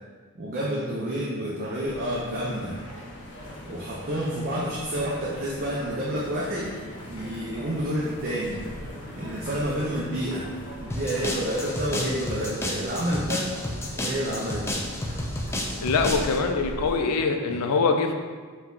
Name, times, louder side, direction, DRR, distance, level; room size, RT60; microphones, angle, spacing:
voice 1, 0.3-2.8 3.7-6.8 7.1-8.6 9.1-13.5 14.0-14.8 17.0-17.1 17.5-17.6, equal, 40° right, -5 dB, 0.5 m, -29 dB
sound 1, 1.8-17.0, equal, 55° left, 0.8 m, -40 dB
sound 2, 10.9-16.4, left 1 dB, 10° left, 0.3 m, -31 dB
voice 2, 15.8-18.1, left 4 dB, 85° left, 5 dB, 0.4 m, -23 dB
4.4 x 2.3 x 3.7 m, 1.5 s
head